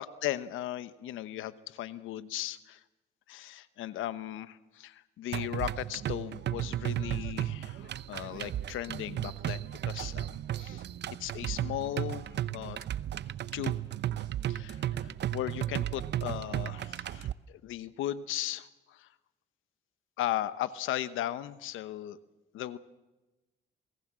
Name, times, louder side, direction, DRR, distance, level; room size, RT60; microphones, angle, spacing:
voice 1, 0.0-2.8 3.3-10.8 11.2-12.8 13.5-13.8 14.5-19.1 20.2-22.2 22.5-22.8, left 13 dB, 85° left, 14 dB, 1.1 m, -37 dB
sound 1, 5.3-17.3, right 12 dB, 60° right, 0.8 m, -34 dB
28.0 x 19.0 x 7.5 m, 1.1 s
cardioid pair, 90°, 20 cm